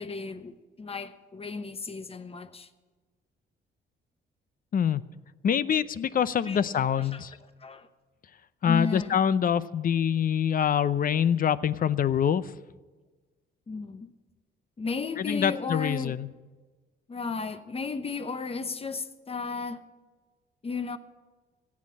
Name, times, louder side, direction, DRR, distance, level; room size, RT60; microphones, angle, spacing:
voice 1, 0.0-2.7 6.4-6.6 7.0-7.9 8.6-9.2 13.7-14.1 14.8-16.2 17.1-19.8 20.6-21.0, left 4 dB, 30° left, 1.0 m, -34 dB
voice 2, 5.4-7.3 8.6-12.5 15.3-16.3, left 8 dB, 45° left, 0.6 m, -25 dB
15.0 x 8.5 x 8.7 m
cardioid pair, 90°, 20 cm